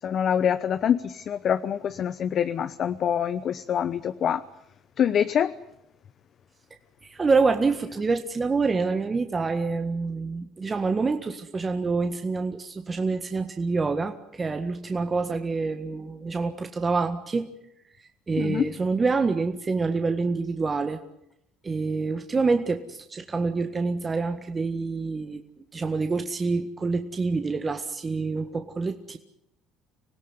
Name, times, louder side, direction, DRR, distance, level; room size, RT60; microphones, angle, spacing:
voice 1, 0.0-4.4 5.0-5.5 18.4-18.7, left 8 dB, 50° left, 12 dB, 1.0 m, -25 dB
voice 2, 7.0-17.5 18.0-21.0 21.6-25.4 25.7-29.2, right 4 dB, 25° right, 6 dB, 1.7 m, -27 dB
25.5 x 17.0 x 9.8 m, 0.82 s
supercardioid pair, 80°, 0 cm